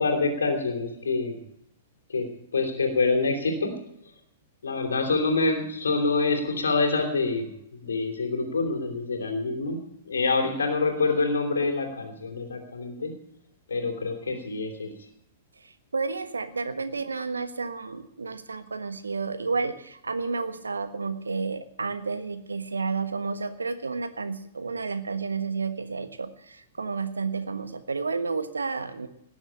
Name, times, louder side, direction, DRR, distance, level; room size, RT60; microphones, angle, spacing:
voice 1, 0.0-1.4 2.1-3.8 4.6-7.5 7.8-9.8 10.0-13.1 13.7-14.9, left 3 dB, 70° left, 3 dB, 3.0 m, -26 dB
voice 2, 15.6-29.1, right 4 dB, 75° right, 10 dB, 1.4 m, -31 dB
19.0 x 7.1 x 8.9 m, 0.74 s
figure-of-eight pair, 105°, 0 cm